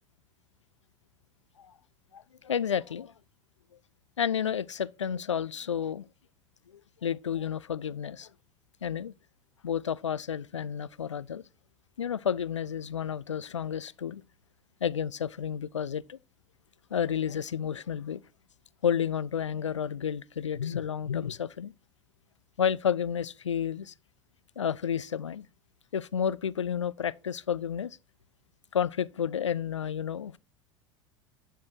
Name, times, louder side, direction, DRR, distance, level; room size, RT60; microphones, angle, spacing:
voice 1, 2.1-3.1 4.2-6.0 7.0-8.3 8.8-9.1 9.6-11.4 12.0-14.2 14.8-16.2 16.9-18.2 18.8-21.7 22.6-23.9 24.6-25.5 25.9-28.0 28.7-30.4, left 8 dB, 80° left, 0.4 m, -31 dB
11.0 x 4.7 x 4.6 m
figure-of-eight pair, 75°, 15 cm